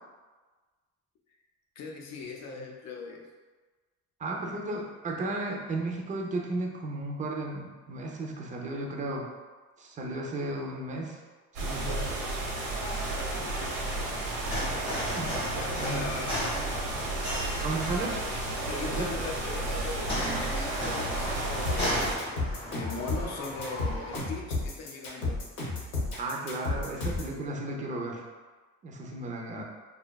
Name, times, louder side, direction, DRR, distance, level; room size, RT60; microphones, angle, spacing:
voice 1, 1.8-3.2 15.6-16.4 18.7-22.4 22.7-25.4, left 3 dB, 60° left, 0 dB, 0.5 m, -39 dB
voice 2, 4.2-9.3 9.8-11.2 11.6-12.1 15.1-15.4 15.7-16.2 17.6-18.2 18.8-19.1 26.2-28.2 28.8-29.6, right 2 dB, 25° right, 0 dB, 0.4 m, -34 dB
sound 1, 11.5-22.2, right 2 dB, 85° right, 0.7 m, -33 dB
sound 2, 12.7-24.2, equal, 20° left, 0.9 m, -36 dB
sound 3, 21.7-27.3, left 3 dB, 85° left, 0.9 m, -32 dB
2.6 x 2.1 x 2.2 m, 1.3 s
cardioid pair, 105°, 31 cm